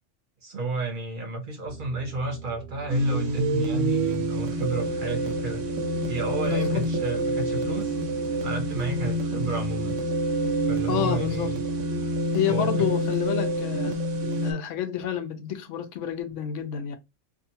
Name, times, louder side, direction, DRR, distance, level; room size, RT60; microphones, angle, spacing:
voice 1, 0.4-5.6 6.1-8.0 8.4-9.9 10.6-11.6 12.4-12.9, right 3 dB, 55° right, 0.7 m, -32 dB
sound 1, 1.7-12.2, right 3 dB, 10° left, 0.7 m, -43 dB
sound 2, 2.9-14.5, right 1 dB, 85° right, 1.0 m, -27 dB
voice 2, 6.5-6.8 10.9-11.5 12.3-14.0 14.4-17.0, left 9 dB, 85° left, 1.0 m, -29 dB
2.7 x 2.4 x 2.7 m
omnidirectional pair, 1.2 m